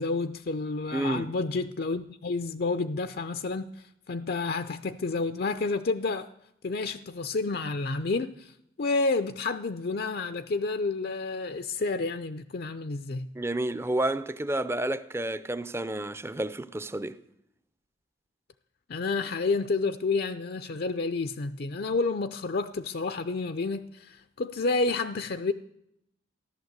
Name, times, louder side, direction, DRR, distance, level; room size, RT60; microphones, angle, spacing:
voice 1, 0.0-6.3 6.6-13.3 18.9-25.5, left 3 dB, 55° left, 0.5 m, -30 dB
voice 2, 0.9-1.3 13.3-17.2, right 1 dB, 15° right, 0.5 m, -30 dB
14.5 x 11.5 x 8.0 m
head